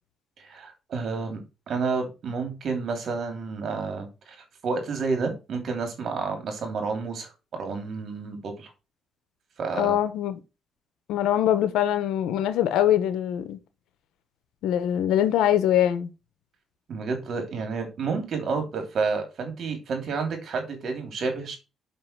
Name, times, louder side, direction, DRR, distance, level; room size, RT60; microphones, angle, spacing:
voice 1, 0.4-1.4 1.7-8.7 9.6-10.0 16.9-21.6, right 4 dB, 60° right, 3.1 m, -30 dB
voice 2, 9.8-10.4 11.1-13.6 14.6-16.1, left 11 dB, 90° left, 1.0 m, -23 dB
5.7 x 5.6 x 5.8 m
cardioid pair, 90°, 0 cm